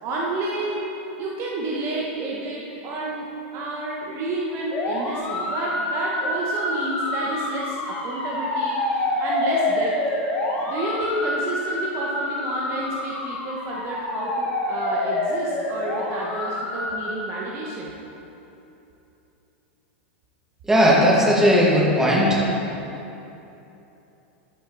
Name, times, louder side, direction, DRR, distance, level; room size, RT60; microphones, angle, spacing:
voice 1, 0.0-3.3 3.5-10.0 10.7-17.9, right 2 dB, 40° right, -3 dB, 1.2 m, -30 dB
sound 1, 4.7-17.2, left 2 dB, 30° left, 1.8 m, -27 dB
voice 2, 20.7-22.4, equal, 10° right, -5 dB, 2.1 m, -17 dB
13.0 x 5.9 x 4.1 m, 3.0 s
hypercardioid pair, 115°, 7 cm